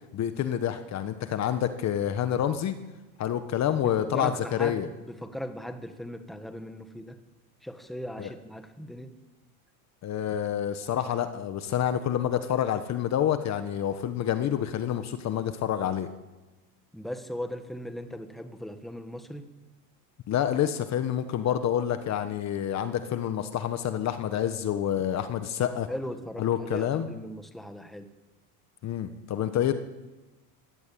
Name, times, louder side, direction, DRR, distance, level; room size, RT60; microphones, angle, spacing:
voice 1, 0.1-2.8 3.2-4.9 8.2-8.3 10.0-16.1 20.3-25.9 26.4-27.1 28.8-29.7, left 10 dB, 35° left, 9 dB, 1.4 m, -28 dB
voice 2, 3.8-4.8 5.1-7.2 7.6-9.1 16.9-19.5 25.9-28.1, equal, ahead, 7 dB, 1.7 m, -38 dB
24.0 x 17.0 x 8.7 m, 1.1 s
supercardioid pair, 130°, 46 cm